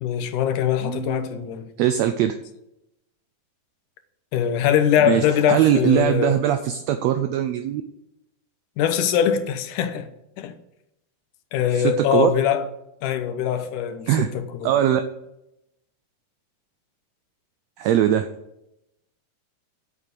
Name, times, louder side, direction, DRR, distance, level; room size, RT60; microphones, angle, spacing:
voice 1, 0.0-1.7 4.3-6.4 8.8-10.1 10.4-10.6 11.5-12.7 13.0-14.3 14.6-14.7, left 9 dB, 80° left, 2.4 m, -22 dB
voice 2, 0.8-1.4 1.8-2.4 5.0-7.8 11.7-12.3 14.1-14.3 14.6-15.0 17.8-18.3, right 11 dB, 80° right, 1.5 m, -21 dB
8.1 x 7.6 x 7.7 m
omnidirectional pair, 3.7 m